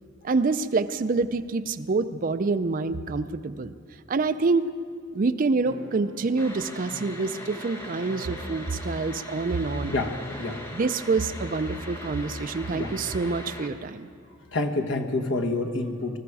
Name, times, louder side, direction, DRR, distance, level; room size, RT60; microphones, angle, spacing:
voice 1, 0.2-3.7 4.1-4.7 5.1-9.9 10.7-14.1, right 3 dB, 40° right, 12 dB, 0.4 m, -26 dB
sound 1, 5.6-7.8 8.0-9.1 9.3-9.4 10.2-11.0, left 1 dB, 65° right, 4.7 m, -46 dB
sound 2, 6.4-13.7, left 1 dB, 10° left, 1.4 m, -40 dB
voice 2, 9.9-10.6 12.7-12.9 14.5-16.2, left 2 dB, 60° left, 3 dB, 1.2 m, -28 dB
20.5 x 14.0 x 4.8 m, 2.3 s
head